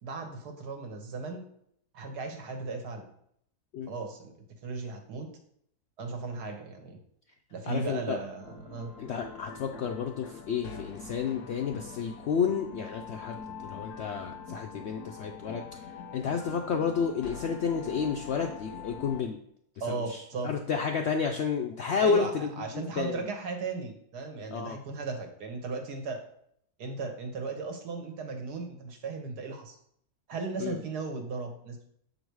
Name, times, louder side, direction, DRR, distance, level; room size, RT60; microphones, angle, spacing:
voice 1, 0.0-1.4 1.9-3.1 3.9-4.3 4.6-5.3 6.0-7.0 7.5-8.9 19.8-20.5 22.0-26.2 26.8-29.8 30.3-31.9, right 4 dB, 85° right, 4 dB, 1.7 m, -36 dB
voice 2, 7.7-8.2 9.0-13.4 13.6-19.4 19.9-23.2 24.5-24.8 30.6-30.8, left 6 dB, 75° left, 4 dB, 0.6 m, -31 dB
sound 1, 8.4-19.2, left 5 dB, 90° left, 1.5 m, -44 dB
7.0 x 3.9 x 4.6 m, 0.68 s
omnidirectional pair, 1.7 m